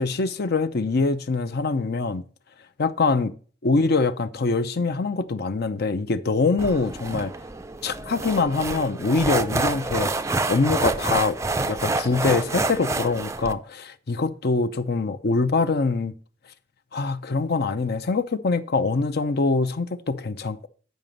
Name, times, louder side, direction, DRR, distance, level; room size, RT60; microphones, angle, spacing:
voice 1, 0.0-2.2 2.8-3.3 3.6-7.4 7.8-10.1 10.5-11.4 11.7-16.1 16.9-20.7, left 3 dB, 55° left, 0.6 m, -24 dB
sound 1, 6.6-13.5, right 3 dB, 15° right, 0.4 m, -27 dB
9.3 x 5.0 x 5.2 m
head